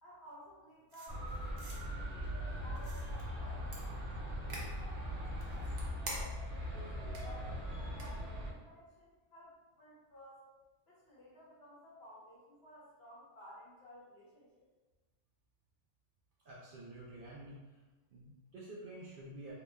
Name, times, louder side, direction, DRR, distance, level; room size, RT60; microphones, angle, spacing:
voice 1, 0.0-3.9 4.3-6.4 6.7-10.4 10.9-14.7, equal, 55° left, -6 dB, 1.1 m, -56 dB
sound 1, 0.9-1.8 2.8-3.2 3.7-3.8 4.5-4.7 5.3-6.5 7.1-7.2 8.0-8.1, right 2 dB, 75° right, 1.1 m, -46 dB
sound 2, 1.1-8.5, equal, 35° left, 1.1 m, -40 dB
voice 2, 16.5-17.6 18.1-19.5, right 1 dB, 60° right, -6 dB, 0.6 m, -49 dB
2.9 x 2.1 x 3.3 m, 1.2 s
omnidirectional pair, 1.3 m